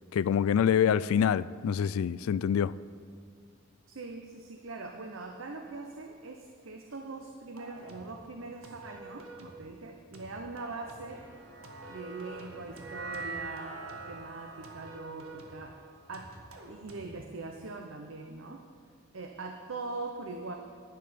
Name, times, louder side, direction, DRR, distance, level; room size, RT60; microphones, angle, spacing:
voice 1, 0.1-2.7, left 8 dB, 85° left, 0.3 m, -26 dB
voice 2, 3.9-11.2 11.9-13.7 14.1-15.8 16.1-16.3 16.7-18.6 19.1-20.6, right 3 dB, 70° right, 0.8 m, -42 dB
sound 1, 7.6-8.2 8.6-9.7 10.1-11.2 11.6-14.2 14.6-15.7 16.1-17.1, right 2 dB, 90° right, 1.6 m, -49 dB
sound 2, 11.1-17.5, right 3 dB, 55° right, 1.8 m, -45 dB
11.0 x 10.5 x 5.1 m
head